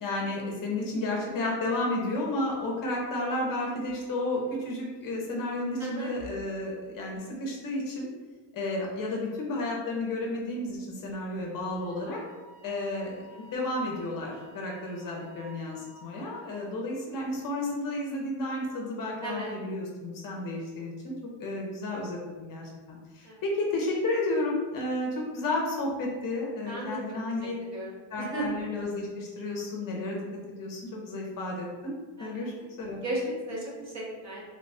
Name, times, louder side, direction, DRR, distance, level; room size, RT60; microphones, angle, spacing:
voice 1, 0.0-8.1 8.5-12.2 12.6-13.3 13.5-21.1 21.4-27.5 28.1-30.2 30.6-33.0, left 2 dB, 40° left, -1 dB, 0.6 m, -32 dB
voice 2, 5.8-6.1 13.3-13.5 19.2-19.5 23.2-23.4 26.7-27.0 27.7-28.4 32.2-32.5 33.0-34.4, right 1 dB, 35° right, -4 dB, 0.7 m, -35 dB
Wind instrument woodwind instrument, 11.7-16.1, right 2 dB, 5° right, 0.9 m, -53 dB
3.1 x 2.2 x 4.0 m, 1.3 s
cardioid pair, 175°, 50 cm